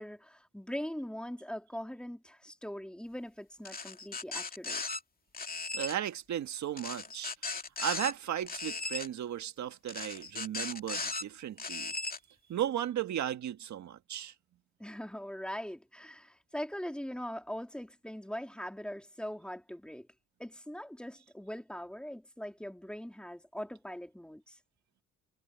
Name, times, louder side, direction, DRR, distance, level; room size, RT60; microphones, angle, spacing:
voice 1, 0.0-4.8 14.8-20.1 20.4-24.6, equal, 5° left, 3.7 m, -41 dB
sound 1, 3.6-5.0 5.3-6.0 6.8-8.1 8.5-9.1 9.9-11.2 11.6-12.2, left 3 dB, 30° left, 2.6 m, -37 dB
voice 2, 5.7-7.3 7.8-11.9 12.5-14.3, right 10 dB, 65° right, 1.9 m, -35 dB
cardioid pair, 90°, 30 cm